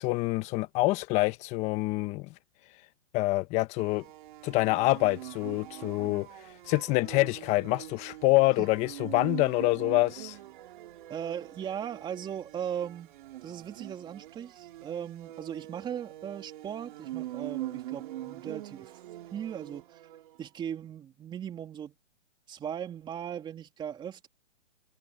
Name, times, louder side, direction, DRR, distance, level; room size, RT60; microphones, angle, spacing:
voice 1, 0.0-2.3 3.1-4.0 4.4-6.3 6.7-10.4, left 21 dB, 20° left, 1.3 m, -26 dB
sound 1, 3.8-20.4, right 15 dB, 40° right, 3.4 m, -43 dB
voice 2, 11.1-13.1 13.4-19.0 19.3-20.0 20.4-21.9 22.5-24.3, right 9 dB, 10° right, 3.1 m, -38 dB
hypercardioid pair, 150°, 38 cm